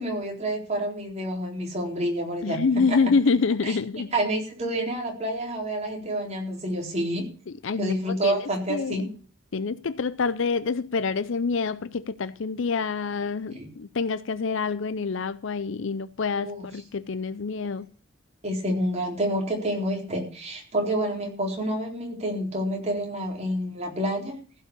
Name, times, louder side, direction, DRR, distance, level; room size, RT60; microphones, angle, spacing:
voice 1, 0.0-3.0 3.6-3.7 4.1-7.3 7.8-9.1 13.5-13.7 16.4-16.6 18.4-24.4, right 1 dB, 30° right, 4.0 m, -28 dB
voice 2, 2.4-4.1 7.6-9.1 9.5-17.9, left 4 dB, 65° left, 0.5 m, -27 dB
15.5 x 5.6 x 8.3 m
head